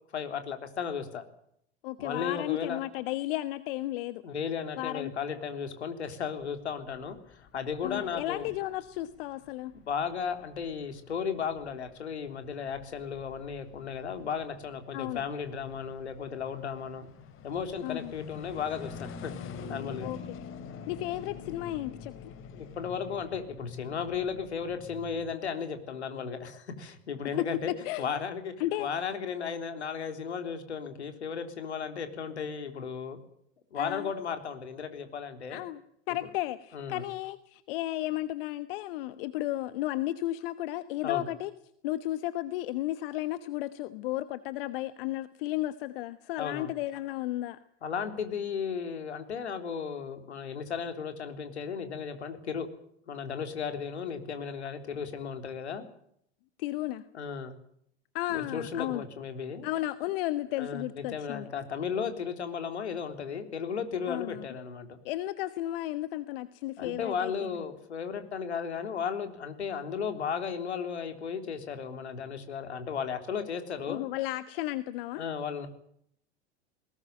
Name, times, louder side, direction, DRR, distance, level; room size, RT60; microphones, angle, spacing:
voice 1, 0.1-1.2 2.0-2.8 4.2-8.5 9.8-17.1 17.4-19.3 19.7-20.1 22.5-27.7 28.0-33.2 33.7-35.6 36.7-37.1 41.0-41.2 46.4-46.7 47.8-52.7 53.1-55.8 57.1-57.6 58.3-59.7 60.6-65.0 66.8-74.0 75.1-75.7, left 6 dB, 75° left, 8 dB, 3.6 m, -35 dB
voice 2, 1.8-4.2 4.8-5.1 7.8-9.7 14.9-15.2 17.8-18.1 20.0-20.4 20.9-22.3 27.4-27.5 27.8-28.0 28.6-29.2 33.7-34.1 35.5-35.8 36.1-41.5 41.8-47.6 56.6-57.0 58.1-59.0 59.6-61.5 64.1-64.4 65.0-67.3 73.9-75.2, left 16 dB, 55° left, 14 dB, 1.2 m, -33 dB
sound 1, 6.5-25.3, left 6 dB, 40° left, 3.2 m, -47 dB
21.0 x 18.5 x 9.0 m, 0.70 s
figure-of-eight pair, 85°, 34 cm